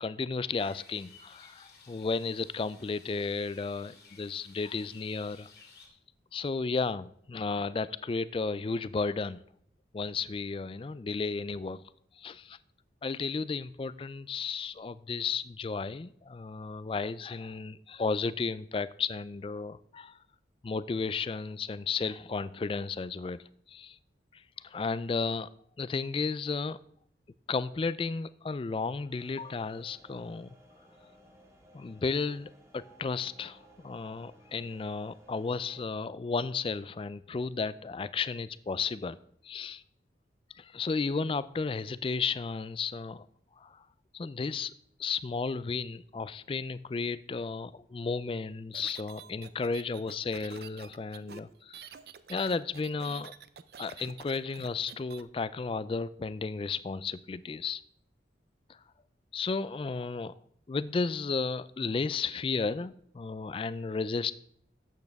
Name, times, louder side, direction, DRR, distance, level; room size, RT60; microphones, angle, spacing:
voice 1, 0.0-5.5 6.3-9.4 9.9-11.8 12.2-12.6 13.0-20.2 20.6-24.0 24.3-25.5 25.8-26.8 27.5-30.6 31.7-39.2 39.4-39.8 40.6-43.3 43.6-43.8 44.1-44.7 45.0-51.9 52.3-53.3 53.8-57.8 58.7-58.8 59.3-60.3 60.7-64.4, left 4 dB, 30° left, 17 dB, 0.3 m, -33 dB
sound 1, 0.5-5.9, left 5 dB, 65° left, 2.4 m, -56 dB
sound 2, 29.1-35.9, equal, 15° right, 1.4 m, -58 dB
sound 3, 48.7-55.2, right 7 dB, 55° right, 0.5 m, -48 dB
12.0 x 8.5 x 3.5 m, 0.68 s
head